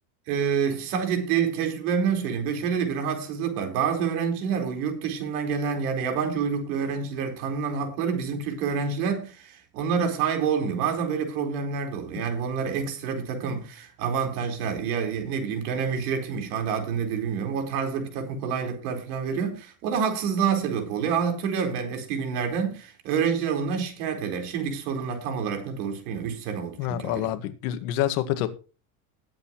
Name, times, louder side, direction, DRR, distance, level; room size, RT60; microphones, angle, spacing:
voice 1, 0.3-27.3, right 6 dB, 85° right, 4.5 m, -28 dB
voice 2, 26.8-28.5, left 13 dB, 75° left, 1.9 m, -27 dB
20.0 x 8.3 x 3.0 m
cardioid pair, 165°, 44 cm